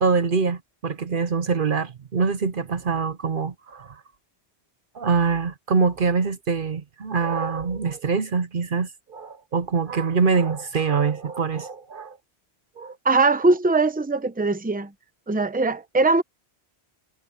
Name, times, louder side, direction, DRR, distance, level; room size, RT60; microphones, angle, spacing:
voice 1, 0.0-4.0 4.9-12.2 12.8-13.0, right 5 dB, 55° right, 0.9 m, -24 dB
voice 2, 13.0-14.9 15.3-16.2, right 3 dB, 10° right, 0.8 m, -21 dB
omnidirectional pair, 1.1 m